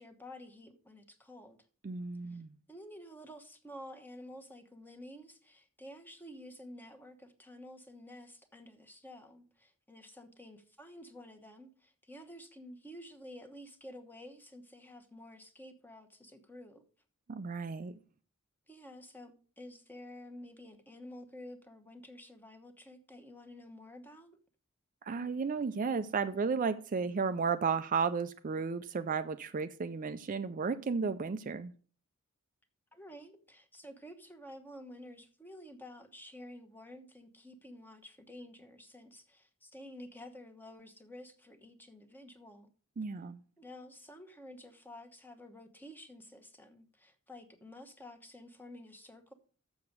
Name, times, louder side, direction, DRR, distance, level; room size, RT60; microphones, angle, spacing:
voice 1, 0.0-1.6 2.2-2.4 2.7-16.8 18.7-24.4 32.9-42.7 43.6-49.3, left 1 dB, 10° left, 1.1 m, -51 dB
voice 2, 1.8-2.5 17.3-18.0 25.0-31.7 43.0-43.4, right 5 dB, 40° right, 0.4 m, -33 dB
7.1 x 6.8 x 6.5 m
head